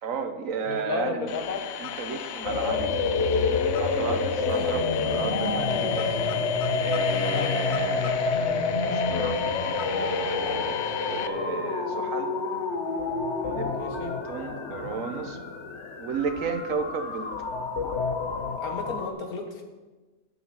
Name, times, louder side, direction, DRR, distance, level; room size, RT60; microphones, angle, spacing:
voice 1, 0.0-1.3 1.8-2.9 3.5-9.4 9.8-12.5 13.4-13.7 14.3-15.4 16.0-17.3, right 5 dB, 65° right, 8 dB, 1.3 m, -34 dB
voice 2, 0.6-1.7 3.9-4.8 5.9-6.2 7.3-7.5 10.4-10.6 13.7-14.2 18.6-19.6, left 4 dB, 90° left, 4 dB, 1.9 m, -34 dB
sound 1, 1.3-11.3, left 10 dB, 75° left, 1.1 m, -35 dB
sound 2, 2.4-19.1, left 4 dB, 55° left, 1.3 m, -28 dB
9.5 x 6.9 x 8.7 m, 1.2 s
omnidirectional pair, 1.5 m